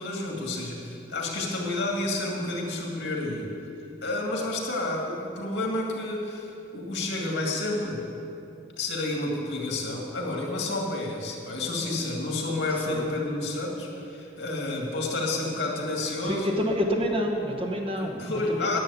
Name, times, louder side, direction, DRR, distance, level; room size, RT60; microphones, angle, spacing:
voice 1, 0.0-3.5 4.0-8.1 8.8-16.5 18.0-18.8, left 2 dB, 85° left, -1 dB, 2.1 m, -30 dB
voice 2, 16.2-18.2 18.6-18.8, equal, 30° right, 1 dB, 1.2 m, -28 dB
10.5 x 7.4 x 8.3 m, 2.8 s
head